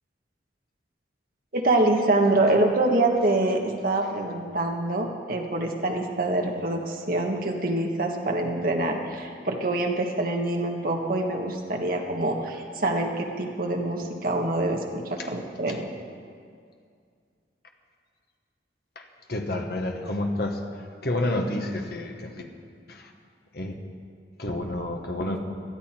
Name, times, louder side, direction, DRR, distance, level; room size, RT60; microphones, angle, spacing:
voice 1, 1.5-15.9, right 2 dB, 50° right, 2 dB, 1.5 m, -25 dB
voice 2, 19.3-20.6 21.0-22.5 22.9-23.1 23.5-23.8 24.4-25.4, left 1 dB, 55° left, 3 dB, 1.4 m, -29 dB
18.0 x 12.5 x 4.5 m, 2.2 s
head